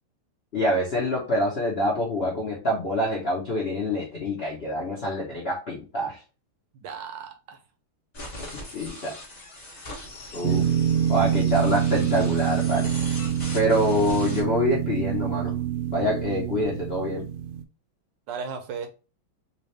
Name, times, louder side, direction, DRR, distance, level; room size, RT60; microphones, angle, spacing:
voice 1, 0.5-6.2 8.7-9.1 10.3-10.7 11.1-12.9 13.5-15.5 15.9-17.3, left 1 dB, 70° left, 0.5 m, -26 dB
voice 2, 6.8-7.6 18.3-18.9, right 6 dB, 70° right, 1.2 m, -35 dB
sound 1, 8.1-14.4, left 1 dB, 35° left, 0.6 m, -40 dB
sound 2, 10.4-17.6, right 9 dB, 90° right, 1.5 m, -26 dB
3.6 x 2.8 x 3.2 m
omnidirectional pair, 2.4 m